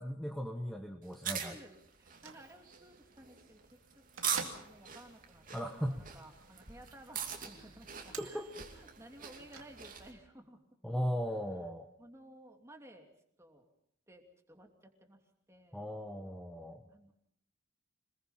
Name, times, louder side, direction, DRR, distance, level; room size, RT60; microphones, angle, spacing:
voice 1, 0.0-1.6 5.5-6.0 8.2-8.5 10.8-11.9 15.7-16.8, equal, ahead, 3 dB, 1.2 m, -37 dB
sound 1, 1.0-10.1, right 7 dB, 40° right, 2.8 m, -42 dB
voice 2, 1.3-8.4 8.7-10.6 11.3-11.4 12.0-13.1 13.4-13.7 14.1-15.2 15.5-15.9 16.9-17.1, right 1 dB, 15° right, 3 dB, 2.9 m, -56 dB
Bell / Microwave oven, 1.9-10.2, right 5 dB, 85° right, 2.2 m, -52 dB
26.5 x 20.5 x 5.7 m, 0.71 s
head